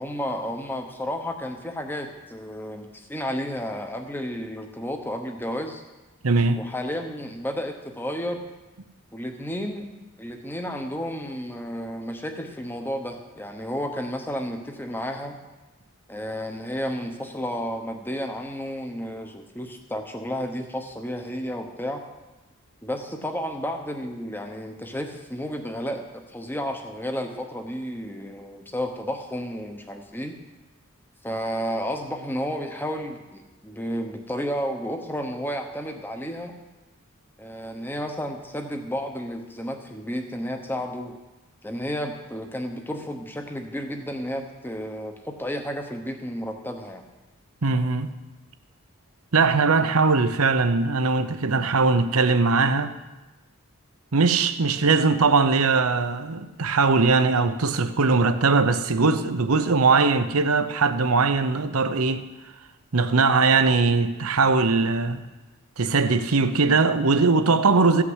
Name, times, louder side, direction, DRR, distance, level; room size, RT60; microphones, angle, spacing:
voice 1, 0.0-5.8 6.6-8.5 9.1-9.9 10.2-15.4 16.1-22.0 22.8-30.4 31.2-36.5 37.4-41.2 41.6-47.0, equal, 10° left, 1.0 m, -32 dB
voice 2, 6.2-6.6 47.6-48.1 49.3-52.9 54.1-62.2 62.9-65.3 65.8-68.0, right 4 dB, 80° right, 0.8 m, -20 dB
15.0 x 6.0 x 8.1 m
head